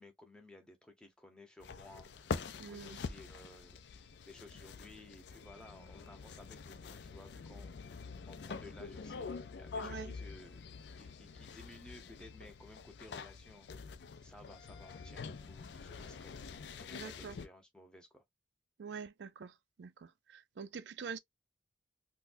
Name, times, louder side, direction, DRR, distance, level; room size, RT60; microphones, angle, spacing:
voice 1, 0.0-8.0 8.3-10.7 11.0-13.7 14.2-18.2, left 1 dB, 5° left, 0.9 m, -56 dB
sound 1, 1.6-17.5, left 5 dB, 75° left, 0.4 m, -46 dB
voice 2, 2.6-3.0 9.8-10.1 16.9-17.3 18.8-19.5 19.8-21.2, right 6 dB, 75° right, 0.4 m, -45 dB
4.0 x 2.2 x 2.6 m
head